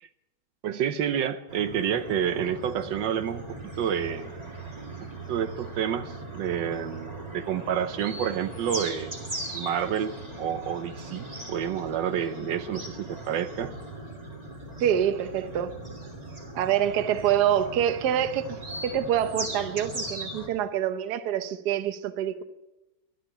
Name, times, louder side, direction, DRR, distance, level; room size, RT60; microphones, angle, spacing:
voice 1, 0.6-4.3 5.3-9.2 9.5-13.7, right 9 dB, 85° right, 1.5 m, -29 dB
sound 1, 1.5-20.5, right 2 dB, 20° right, 2.1 m, -39 dB
voice 2, 14.8-15.7 16.5-18.6 18.8-22.4, right 10 dB, 65° right, 1.3 m, -26 dB
12.5 x 12.0 x 8.0 m
omnidirectional pair, 2.0 m